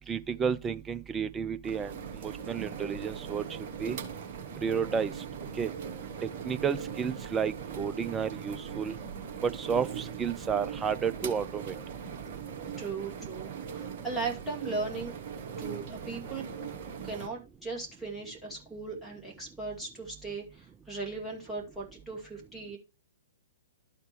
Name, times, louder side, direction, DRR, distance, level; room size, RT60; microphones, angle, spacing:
voice 1, 0.1-3.4 3.8-4.0 4.6-5.1 5.6-5.7 6.4-8.9 9.4-11.7, right 6 dB, 15° right, 0.4 m, -31 dB
sound 1, 1.6-17.3, right 7 dB, 40° right, 1.4 m, -40 dB
voice 2, 12.8-15.1 15.6-16.4 17.0-22.8, right 3 dB, ahead, 2.3 m, -38 dB
12.5 x 4.4 x 3.0 m
figure-of-eight pair, 110°, 0 cm